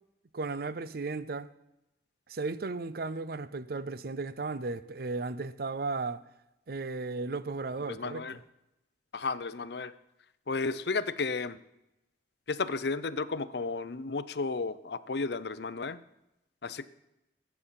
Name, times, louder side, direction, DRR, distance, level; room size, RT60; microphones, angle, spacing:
voice 1, 0.3-1.5 2.3-6.2 6.7-8.4, right 3 dB, 55° right, 0.6 m, -35 dB
voice 2, 7.9-8.4 9.1-9.9 10.5-11.6 12.5-16.0 16.6-16.9, left 4 dB, 65° left, 0.6 m, -33 dB
20.0 x 8.3 x 5.7 m
head